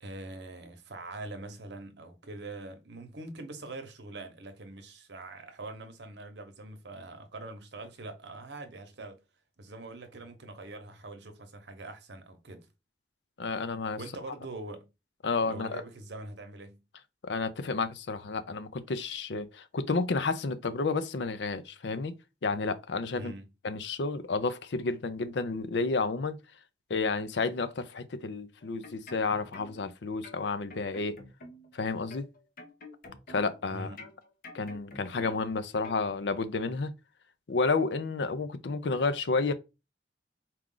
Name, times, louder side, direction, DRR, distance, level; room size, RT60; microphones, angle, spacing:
voice 1, 0.0-9.2 9.6-12.7 14.0-14.9 15.4-16.8 23.1-23.5 33.7-34.1, right 2 dB, 75° right, 0.9 m, -43 dB
voice 2, 13.4-14.0 15.2-15.8 17.2-22.1 22.4-23.3 23.6-26.4 26.9-31.2 31.7-32.3 33.3-34.0 34.5-36.9 37.5-39.5, left 4 dB, 80° left, 0.6 m, -31 dB
sound 1, 28.6-29.9 30.2-31.8 32.1-33.6 34.0-35.5 35.8-36.0, left 1 dB, 55° left, 0.9 m, -49 dB
4.4 x 2.4 x 3.7 m
head